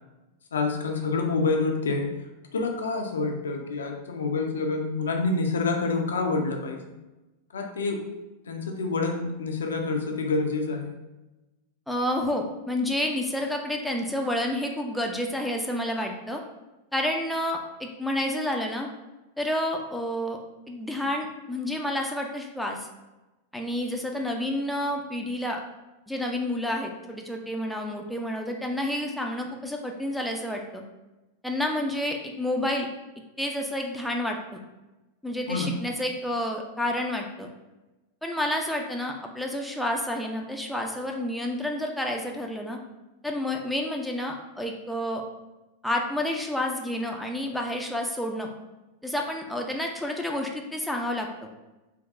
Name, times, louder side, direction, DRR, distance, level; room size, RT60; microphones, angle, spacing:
voice 1, 0.5-2.1 2.5-6.8 7.5-8.0 8.5-10.9 35.5-35.7, left 3 dB, 65° left, 3 dB, 0.4 m, -27 dB
voice 2, 11.9-16.4 16.9-18.9 19.4-20.4 20.7-22.9 23.5-25.6 26.1-30.8 31.4-32.9 33.4-34.6 35.2-37.5 38.2-42.8 43.2-45.2 45.8-48.5 49.0-51.5, left 1 dB, ahead, 1 dB, 0.4 m, -29 dB
3.5 x 2.6 x 2.4 m, 1.1 s
figure-of-eight pair, 90°, 0 cm